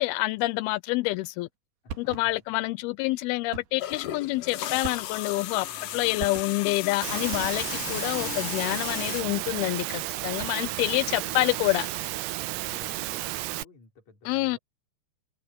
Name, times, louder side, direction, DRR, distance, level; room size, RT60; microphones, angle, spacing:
voice 1, 0.0-1.5 2.2-5.7 5.9-11.9 14.3-14.6, left 20 dB, 80° left, 2.4 m, -27 dB
voice 2, 1.8-2.4 5.7-6.3 10.1-11.5 12.5-14.6, left 3 dB, 45° left, 6.0 m, -53 dB
sound 1, 1.9-2.5 3.5-3.9 4.8-5.4 6.2-6.8 7.3-8.0 10.2-10.8, right 7 dB, 70° right, 3.8 m, -41 dB
sound 2, 3.8-9.2, left 11 dB, 65° left, 2.3 m, -35 dB
Engine / Mechanisms, 7.0-13.6, right 17 dB, 90° right, 2.9 m, -33 dB
omnidirectional pair, 4.6 m